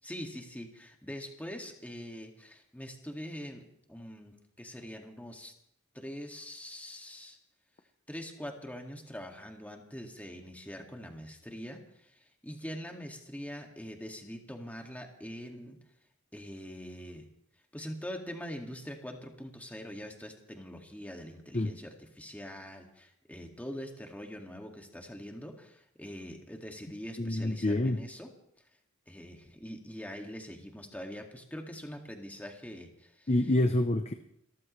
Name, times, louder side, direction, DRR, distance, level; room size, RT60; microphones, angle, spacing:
voice 1, 0.0-3.6 3.9-5.5 5.9-7.4 8.1-15.8 16.3-17.2 17.7-28.3 29.1-33.3, equal, 10° left, 2 dB, 2.0 m, -43 dB
voice 2, 27.2-28.0 33.3-34.1, left 1 dB, 30° left, 7 dB, 0.7 m, -27 dB
29.0 x 14.0 x 3.2 m, 0.76 s
head